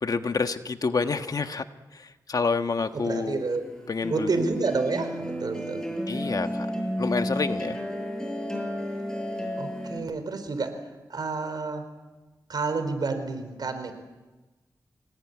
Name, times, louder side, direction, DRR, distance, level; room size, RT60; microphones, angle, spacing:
voice 1, 0.0-1.6 1.9-3.4 3.9-4.3 6.1-6.7 7.0-7.8, left 4 dB, 60° left, 8 dB, 1.4 m, -28 dB
sound 1, 2.8-10.0, equal, 10° left, 7.7 m, -32 dB
voice 2, 2.9-3.6 4.1-5.9 9.6-10.8 11.1-11.8 12.5-13.9, right 3 dB, 70° right, 8 dB, 4.6 m, -29 dB
24.5 x 20.0 x 9.7 m, 1.2 s
cardioid pair, 65°, 7 cm